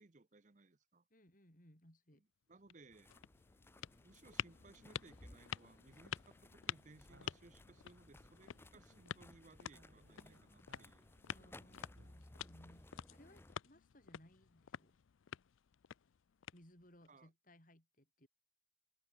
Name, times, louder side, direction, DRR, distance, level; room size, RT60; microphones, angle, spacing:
voice 1, 0.0-1.0 2.1-2.2 2.5-3.2 4.0-11.6 17.1-17.3, right 3 dB, 40° right, 0.8 m, -63 dB
voice 2, 1.1-2.2 11.3-15.0 16.5-18.3, equal, 40° left, 7.8 m, -64 dB
sound 1, 2.5-17.1, left 10 dB, 80° left, 0.4 m, -50 dB
sound 2, 2.9-13.6, left 1 dB, 10° left, 0.6 m, -61 dB
sound 3, 7.1-9.3 9.6-12.2, right 1 dB, 65° right, 3.6 m, -69 dB
open air
head